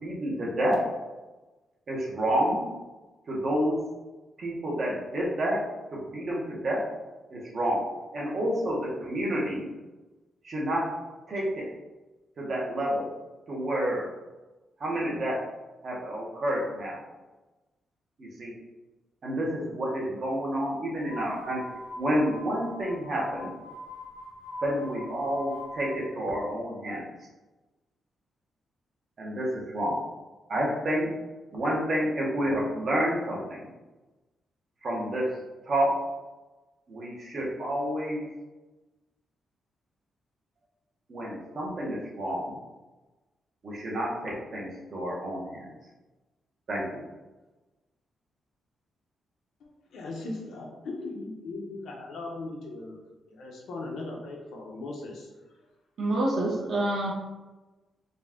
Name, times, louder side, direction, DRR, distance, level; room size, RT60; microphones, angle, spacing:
voice 1, 0.0-0.8 1.9-2.6 3.3-3.8 4.4-5.6 5.9-6.8 7.3-7.8 8.1-9.7 10.4-10.9 11.3-11.7 12.4-13.1 13.5-14.1 14.8-15.4 15.8-17.0 18.2-18.5 19.2-21.6 22.0-23.5 24.6-27.1 29.2-30.0 30.5-31.1 31.5-33.7 34.8-35.3 35.6-35.9 36.9-38.3 41.1-42.5 43.6-45.7 46.7-47.0, equal, 40° right, -3 dB, 1.0 m, -29 dB
sound 1, 21.0-26.0, left 1 dB, 40° left, 0.6 m, -42 dB
voice 2, 49.9-53.0 53.3-55.3, left 2 dB, 75° left, -1 dB, 0.9 m, -38 dB
voice 3, 56.0-57.1, right 1 dB, 60° right, -5 dB, 0.8 m, -26 dB
4.0 x 2.3 x 3.6 m, 1.2 s
wide cardioid pair, 155°, 0 cm